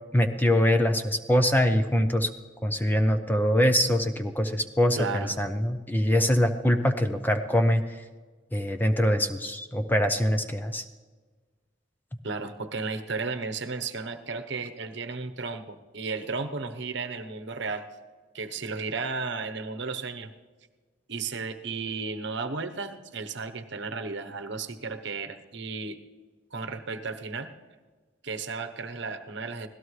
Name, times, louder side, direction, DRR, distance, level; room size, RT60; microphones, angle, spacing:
voice 1, 0.1-2.3 2.6-8.0 8.5-10.8, equal, 10° left, 7 dB, 0.6 m, -23 dB
voice 2, 5.0-5.3 12.2-17.8 18.3-20.3 21.1-26.0 26.5-27.5 28.2-29.7, right 4 dB, 60° right, 8 dB, 1.0 m, -34 dB
25.0 x 17.0 x 3.2 m, 1.4 s
head